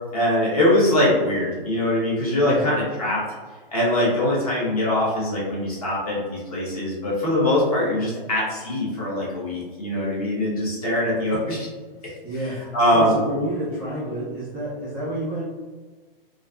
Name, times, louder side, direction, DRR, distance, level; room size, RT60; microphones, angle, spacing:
voice 1, 0.1-3.2 3.7-11.7 12.4-13.1, left 1 dB, 40° left, -6 dB, 0.8 m, -22 dB
voice 2, 12.2-15.4, right 1 dB, 5° right, -12 dB, 0.6 m, -29 dB
2.4 x 2.4 x 2.3 m, 1.4 s
hypercardioid pair, 175°, 29 cm